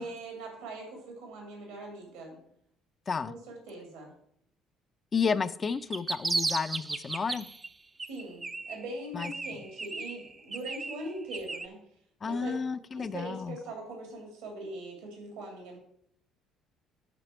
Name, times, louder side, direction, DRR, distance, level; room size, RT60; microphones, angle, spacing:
voice 1, 0.0-2.4 3.2-4.1 8.1-11.8 12.2-12.5 12.9-15.8, right 2 dB, 75° right, 1 dB, 2.5 m, -41 dB
voice 2, 5.1-7.5 9.1-9.3 12.2-13.6, left 5 dB, 35° left, 13 dB, 0.5 m, -31 dB
sound 1, 5.7-7.7 8.0-8.9 9.2-11.7, right 3 dB, 25° right, 0.6 m, -35 dB
11.5 x 4.1 x 4.4 m, 0.69 s
hypercardioid pair, 55°, 0 cm